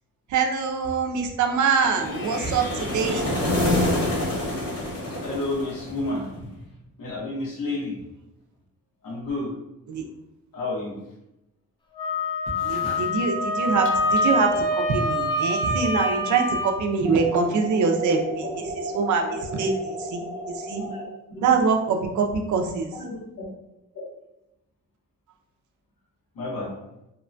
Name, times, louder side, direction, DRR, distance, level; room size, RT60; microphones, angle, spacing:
voice 1, 0.3-3.2 9.9-10.0 12.6-20.9 21.4-22.9, right 5 dB, 65° right, 4 dB, 0.5 m, -24 dB
voice 2, 1.5-2.2 3.0-3.1 4.8-6.5 7.0-8.0 9.0-9.5 10.5-11.0 12.5-13.1 20.7-21.0 21.3-21.4 23.0-23.5 23.9-24.0 26.3-26.7, left 2 dB, 80° left, -4 dB, 1.1 m, -32 dB
sound 1, 1.9-6.2, left 1 dB, 50° left, 1.0 m, -26 dB
Wind instrument woodwind instrument, 12.0-16.7, left 1 dB, 15° left, 0.3 m, -25 dB
sound 2, 17.0-21.0, right 1 dB, 20° right, 0.7 m, -34 dB
2.9 x 2.1 x 2.5 m, 0.89 s
cardioid pair, 120°, 33 cm